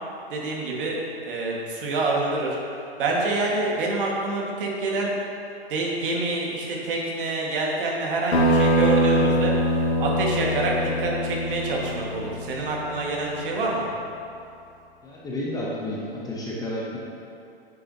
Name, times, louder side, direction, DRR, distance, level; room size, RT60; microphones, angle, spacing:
voice 1, 0.3-2.6 3.0-5.2 5.7-9.5 10.0-13.9, right 2 dB, 55° right, -2 dB, 1.8 m, -27 dB
sound 1, 8.3-13.4, equal, 85° left, 1.7 m, -23 dB
voice 2, 15.0-17.0, left 1 dB, 10° left, -5 dB, 0.8 m, -31 dB
9.3 x 6.5 x 2.8 m, 2.6 s
hypercardioid pair, 135°, 31 cm